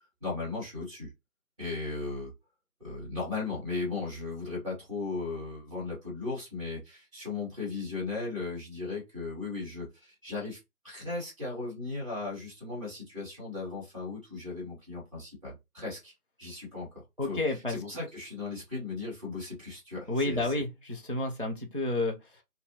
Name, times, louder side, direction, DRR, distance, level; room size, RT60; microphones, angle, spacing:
voice 1, 0.2-1.1 1.6-2.3 2.8-10.6 10.8-16.1 16.4-16.9 17.3-17.4 17.7-20.5, left 3 dB, 20° right, 2.4 m, -36 dB
voice 2, 17.2-17.8 20.1-22.4, left 2 dB, 40° right, 0.5 m, -30 dB
4.4 x 2.7 x 2.9 m
figure-of-eight pair, 160°, 46 cm